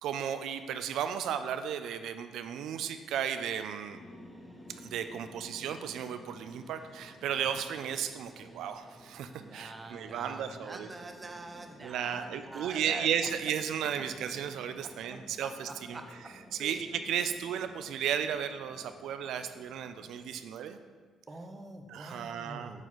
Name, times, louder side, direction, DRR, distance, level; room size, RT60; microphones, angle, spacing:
voice 1, 0.0-4.0 4.8-10.9 11.8-16.0 16.5-20.8 21.9-22.9, right 8 dB, 80° right, 9 dB, 0.4 m, -34 dB
sound 1, 3.9-20.4, left 1 dB, 5° left, 1.2 m, -54 dB
voice 2, 9.4-13.3 15.1-16.3 16.6-16.8 21.3-22.8, right 2 dB, 25° right, 5 dB, 0.9 m, -45 dB
7.3 x 3.9 x 6.2 m, 1.5 s
cardioid pair, 90°, 0 cm